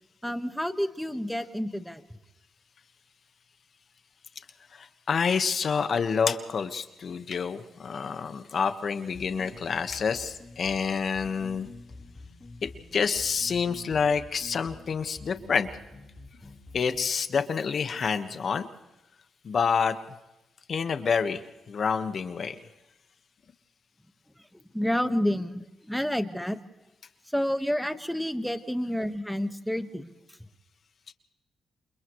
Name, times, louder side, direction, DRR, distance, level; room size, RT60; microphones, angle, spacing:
voice 1, 0.2-2.0 24.5-26.6 27.3-30.1, equal, ahead, 9 dB, 1.5 m, -29 dB
voice 2, 4.7-11.7 12.6-15.7 16.7-18.7 19.4-20.0 20.7-21.4 21.7-22.6, left 6 dB, 55° left, 9 dB, 1.5 m, -28 dB
sound 1, 9.1-17.2, left 2 dB, 20° left, 4.1 m, -48 dB
29.0 x 28.0 x 3.2 m, 0.98 s
cardioid pair, 95°, 0 cm